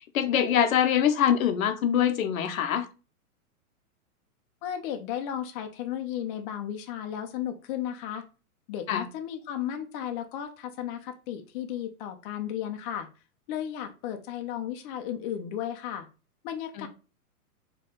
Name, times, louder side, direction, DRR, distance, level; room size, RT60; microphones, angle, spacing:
voice 1, 0.1-2.9 8.9-9.0 16.8-16.9, left 9 dB, 65° left, 0.8 m, -24 dB
voice 2, 4.6-8.2 8.7-13.1 13.5-16.1 16.4-16.9, left 10 dB, 35° left, 0.7 m, -34 dB
4.2 x 3.2 x 3.7 m
hypercardioid pair, 130°, 44 cm